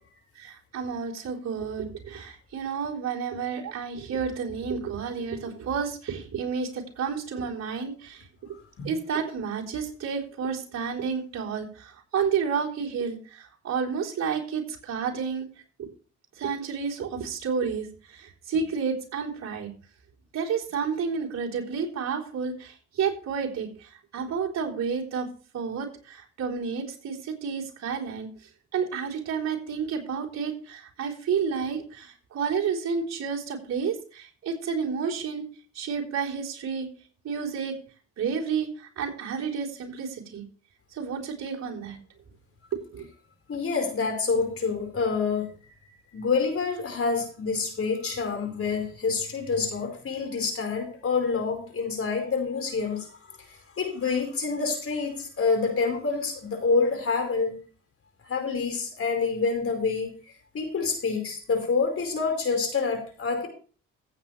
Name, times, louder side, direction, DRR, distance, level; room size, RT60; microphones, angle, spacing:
voice 1, 0.4-8.2 8.8-11.7 12.1-15.4 16.4-17.9 18.2-19.7 20.3-23.7 24.1-25.3 25.5-28.3 28.7-35.4 35.8-36.9 37.2-37.8 38.2-38.7 39.0-40.4 41.0-42.0 42.9-43.0, right 6 dB, 60° right, -3 dB, 4.0 m, -30 dB
voice 2, 43.5-45.5 46.1-53.4 53.7-57.6 58.3-60.1 60.5-63.5, left 4 dB, 50° left, 4 dB, 4.9 m, -27 dB
15.0 x 9.1 x 3.3 m, 0.39 s
cardioid pair, 90°, 30 cm